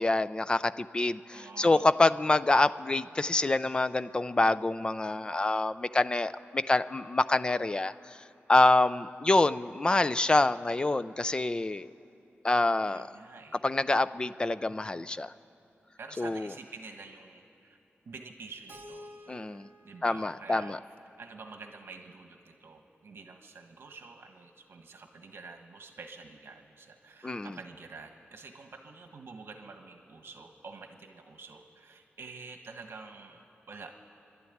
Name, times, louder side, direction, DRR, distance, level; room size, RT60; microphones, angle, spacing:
voice 1, 0.0-8.2 8.5-11.9 12.4-13.1 13.6-15.3 16.2-16.5 19.3-19.7 20.0-20.8 27.2-27.6, left 2 dB, 20° left, 14 dB, 0.4 m, -26 dB
voice 2, 1.3-1.9 12.9-13.6 16.0-17.8 18.0-19.1 19.8-20.8 21.2-34.0, right 4 dB, 70° right, 5 dB, 1.4 m, -48 dB
Keyboard (musical), 18.7-21.6, equal, 50° right, 2.4 m, -52 dB
27.5 x 12.5 x 9.3 m, 2.7 s
wide cardioid pair, 150°, 4 cm